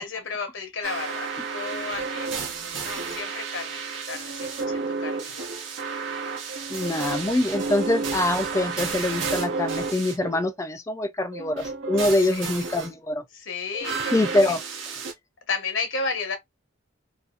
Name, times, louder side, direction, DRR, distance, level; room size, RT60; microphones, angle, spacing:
voice 1, 0.0-3.8 4.1-5.5 6.7-7.0 12.0-12.6 13.3-14.6 15.5-16.4, left 4 dB, 70° left, 0.8 m, -33 dB
sound 1, 0.8-10.5 11.3-12.9 13.7-15.1, right 4 dB, 70° right, 0.7 m, -31 dB
voice 2, 6.7-13.2 14.1-14.6, left 1 dB, 15° left, 0.4 m, -24 dB
2.6 x 2.3 x 2.3 m
head